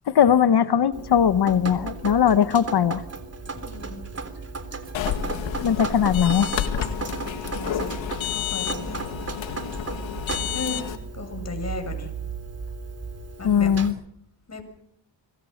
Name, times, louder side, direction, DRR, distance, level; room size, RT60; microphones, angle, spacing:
voice 1, 0.1-3.0 5.6-6.5 13.4-14.0, left 8 dB, 60° left, 12 dB, 1.3 m, -19 dB
Drip, 0.9-13.9, right 4 dB, 35° right, 3.5 m, -35 dB
voice 2, 3.5-4.1 7.4-8.0 8.2-9.0 10.5-12.1 13.4-13.7 14.5-14.6, left 3 dB, 35° left, 5 dB, 7.1 m, -35 dB
sound 1, 4.9-11.0, left 9 dB, 85° left, 2.2 m, -30 dB
26.0 x 22.0 x 6.7 m, 0.74 s
cardioid pair, 80°, 45 cm